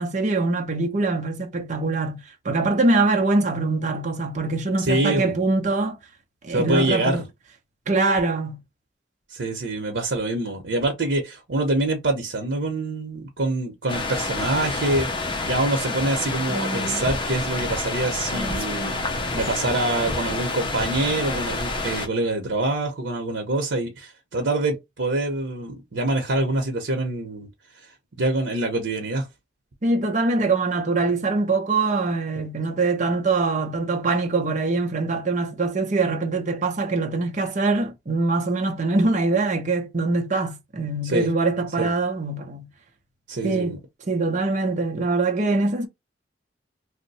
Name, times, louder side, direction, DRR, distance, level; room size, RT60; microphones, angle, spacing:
voice 1, 0.0-6.0 6.4-7.3 7.9-8.6 29.8-42.7 43.4-43.8 44.1-45.9, right 3 dB, 45° right, 0.6 m, -23 dB
voice 2, 4.8-5.4 6.5-7.2 9.3-18.9 19.3-27.5 28.2-29.3 41.0-41.3 41.8-41.9 43.3-43.8, right 2 dB, 90° right, 0.8 m, -25 dB
sound 1, 13.9-22.1, left 3 dB, 30° left, 0.6 m, -28 dB
Female speech woman speaking, 16.4-17.1 18.2-19.7 20.2-21.1, right 1 dB, 10° right, 1.6 m, -36 dB
2.7 x 2.1 x 4.0 m
head